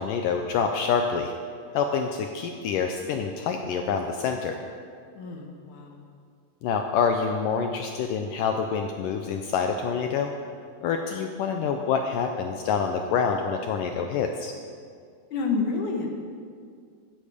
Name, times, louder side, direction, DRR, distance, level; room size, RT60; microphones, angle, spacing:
voice 1, 0.0-1.3 1.7-4.6 6.6-10.3 10.8-14.5, left 6 dB, 90° left, 4 dB, 1.8 m, -27 dB
voice 2, 5.1-6.0 15.3-16.1, left 4 dB, 60° left, 1 dB, 2.5 m, -29 dB
15.0 x 14.0 x 5.1 m, 2.1 s
omnidirectional pair, 4.7 m